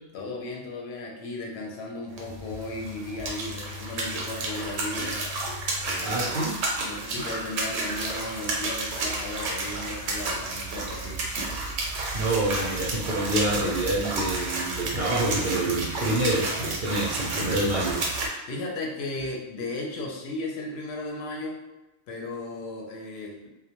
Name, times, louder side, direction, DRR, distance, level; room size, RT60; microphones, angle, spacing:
voice 1, 0.1-5.2 5.8-6.2 6.8-11.2 18.5-21.6 22.1-23.5, left 2 dB, 65° left, -1 dB, 0.8 m, -35 dB
sound 1, 2.1-18.3, right 2 dB, 90° right, 0.9 m, -31 dB
voice 2, 6.0-6.5 12.1-18.0, right 1 dB, 60° right, -6 dB, 0.6 m, -27 dB
2.1 x 2.1 x 2.8 m, 0.99 s
omnidirectional pair, 1.2 m